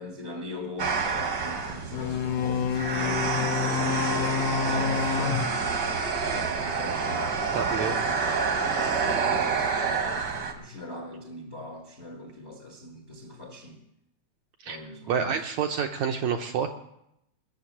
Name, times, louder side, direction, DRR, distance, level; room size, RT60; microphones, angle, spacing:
voice 1, 0.0-5.7 6.3-8.2 8.7-13.8 14.6-15.4, left 2 dB, 50° left, 1 dB, 0.7 m, -41 dB
sound 1, 0.8-10.5, right 5 dB, 55° right, 1.2 m, -28 dB
sound 2, 1.9-6.4, left 7 dB, 80° left, 1.5 m, -29 dB
voice 2, 7.5-7.9 14.6-14.8 15.1-16.7, right 7 dB, 75° right, 5 dB, 1.7 m, -28 dB
21.0 x 7.1 x 7.2 m, 0.81 s
omnidirectional pair, 4.0 m